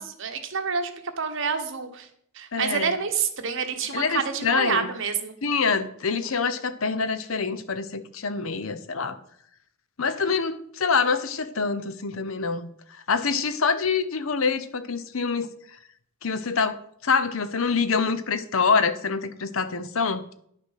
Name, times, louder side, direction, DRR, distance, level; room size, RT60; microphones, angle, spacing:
voice 1, 0.0-2.1 2.3-5.3, right 5 dB, 60° right, 7 dB, 1.2 m, -28 dB
voice 2, 2.5-2.9 3.9-4.9 5.4-9.2 10.0-12.7 13.1-15.5 16.2-20.3, left 5 dB, 70° left, 13 dB, 0.8 m, -25 dB
10.5 x 6.1 x 5.7 m, 0.68 s
head